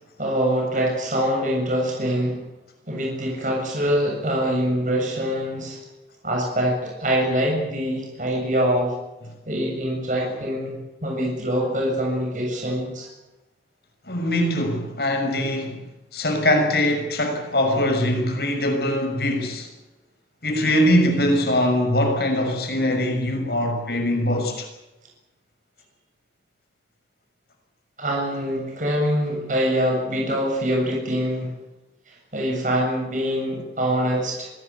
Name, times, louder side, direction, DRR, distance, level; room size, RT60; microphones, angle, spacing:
voice 1, 0.2-2.4 2.9-5.8 6.2-8.9 9.5-13.1 28.0-31.5 32.1-34.5, equal, 45° right, 7.6 m, -24 dB
voice 2, 14.1-15.8 16.1-19.7 20.4-24.7, left 1 dB, 65° left, 6.3 m, -22 dB
25.0 x 18.5 x 8.5 m
head